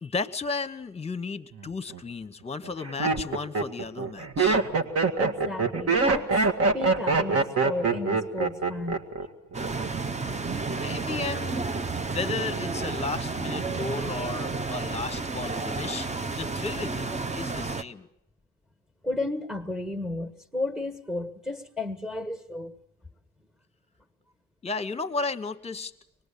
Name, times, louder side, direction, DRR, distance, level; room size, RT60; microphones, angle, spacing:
voice 1, 0.0-4.6 10.8-11.6 12.1-16.1 16.4-18.1 24.6-25.9, left 4 dB, 20° left, 11 dB, 1.3 m, -34 dB
Laughter, 1.6-2.0 2.6-9.3 9.5-10.0, right 4 dB, 50° right, 1.9 m, -24 dB
voice 2, 5.2-6.3 6.7-9.0 19.0-22.7, left 2 dB, 5° right, 3 dB, 1.8 m, -33 dB
sound 1, 9.5-17.8, right 3 dB, 25° right, 0.9 m, -31 dB
24.0 x 20.5 x 8.5 m, 0.78 s
cardioid pair, 90°, 30 cm